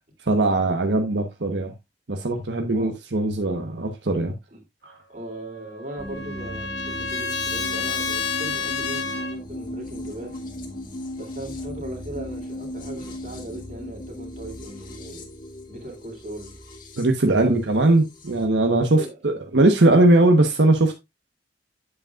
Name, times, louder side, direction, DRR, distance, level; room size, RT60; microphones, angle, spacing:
voice 1, 0.3-1.7 2.1-4.3 4.8-4.9 17.0-20.9, right 2 dB, 85° right, 1.1 m, -20 dB
voice 2, 5.1-10.4 11.1-15.3 15.7-16.6 17.2-17.9 18.9-19.2, right 1 dB, 45° right, 2.9 m, -38 dB
Trumpet, 5.5-9.4, left 5 dB, 75° left, 1.6 m, -29 dB
sound 1, 6.0-18.4, left 1 dB, 50° left, 1.9 m, -37 dB
8.4 x 7.6 x 2.4 m
head